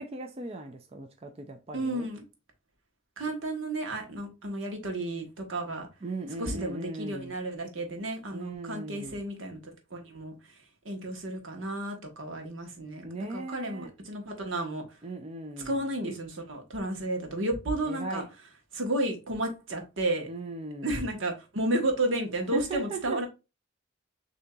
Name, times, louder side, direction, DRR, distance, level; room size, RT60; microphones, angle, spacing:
voice 1, 0.0-2.1 6.0-7.3 8.3-9.2 13.0-13.9 15.0-15.8 17.9-18.3 20.3-21.1 22.5-23.3, right 2 dB, 30° right, 0.4 m, -38 dB
voice 2, 1.7-2.2 3.2-5.9 6.4-9.6 9.9-10.3 10.8-13.0 13.3-15.0 15.6-18.2 18.7-20.3 20.8-23.3, right 1 dB, 80° right, 1.2 m, -32 dB
6.5 x 2.8 x 2.3 m
head